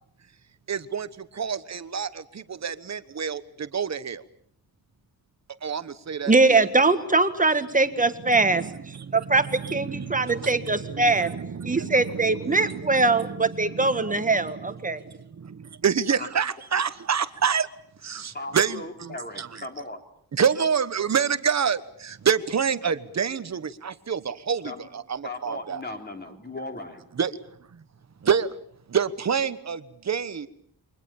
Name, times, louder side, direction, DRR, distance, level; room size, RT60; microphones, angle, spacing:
voice 1, 0.7-4.2 5.6-6.6 8.3-17.7 18.0-19.6 20.3-25.8 27.1-27.4 27.7-27.8 28.2-28.6 28.9-30.5, right 7 dB, 45° right, 13 dB, 1.2 m, -28 dB
voice 2, 6.3-11.3 11.6-15.0, right 3 dB, 20° right, 10 dB, 1.6 m, -22 dB
voice 3, 18.3-20.0 24.6-24.9 25.2-27.0, left 2 dB, 25° left, 4 dB, 3.7 m, -37 dB
28.5 x 24.0 x 7.2 m, 0.66 s
wide cardioid pair, 170°, 39 cm